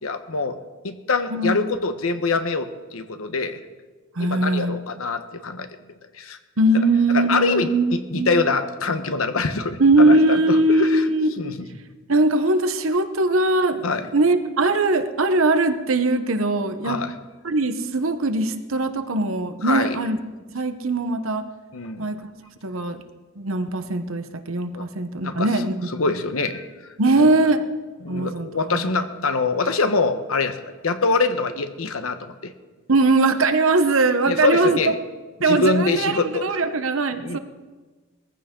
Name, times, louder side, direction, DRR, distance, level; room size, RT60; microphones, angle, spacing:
voice 1, 0.0-0.6 0.8-3.6 4.2-5.7 6.1-6.4 7.1-11.0 11.4-11.7 13.8-14.0 16.8-17.1 19.6-20.0 21.7-22.1 24.7-24.9 25.2-25.5 25.9-27.4 28.0-32.5 34.3-34.9 35.4-36.6 37.2-37.4, left 3 dB, 85° left, 8 dB, 1.1 m, -24 dB
voice 2, 4.2-4.8 6.6-7.8 8.1-8.4 9.8-11.4 12.1-17.0 17.4-20.2 20.5-21.5 22.0-22.3 22.6-23.0 23.4-25.7 27.0-27.6 28.1-28.5 28.8-28.9 32.9-34.8 35.4-36.1 36.4-37.4, right 2 dB, 70° right, 9 dB, 1.0 m, -20 dB
20.5 x 15.0 x 3.8 m, 1.3 s
head